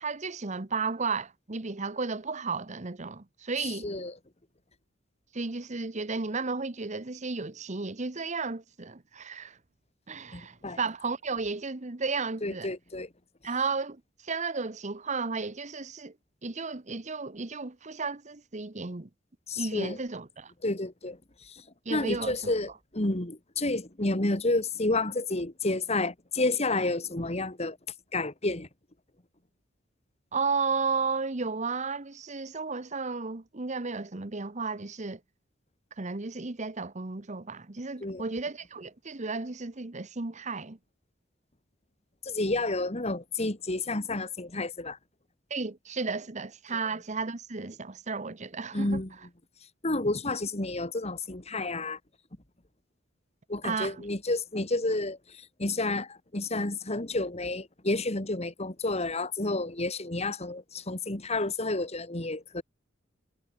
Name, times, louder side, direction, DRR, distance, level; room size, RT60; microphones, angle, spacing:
voice 1, 0.0-3.9 5.3-9.6 10.1-12.7 13.4-16.1 16.4-19.1 19.6-20.5 21.8-22.5 30.3-35.2 36.0-40.8 45.5-49.0 53.6-54.0, right 4 dB, 40° right, 1.1 m, -33 dB
voice 2, 3.6-4.1 10.3-10.8 12.4-13.1 19.5-20.0 20.6-21.6 21.9-27.8 28.1-28.7 38.0-38.2 42.2-45.0 48.7-49.1 49.8-52.0 53.5-62.6, left 2 dB, 35° left, 2.3 m, -30 dB
head